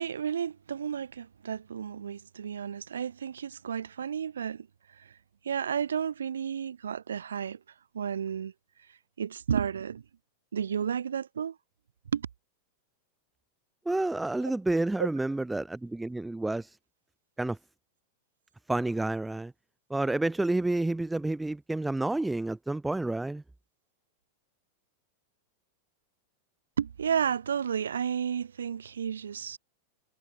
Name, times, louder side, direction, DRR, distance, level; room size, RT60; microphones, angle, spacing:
voice 1, 0.0-4.7 5.0-5.1 5.4-7.6 7.9-8.5 9.2-10.0 10.5-11.6 12.1-12.3 26.8-29.6, right 8 dB, 70° right, 3.4 m, -32 dB
voice 2, 13.9-16.7 17.4-17.6 18.7-19.5 19.9-23.4, right 2 dB, 5° right, 0.4 m, -29 dB
figure-of-eight pair, 90°, 0 cm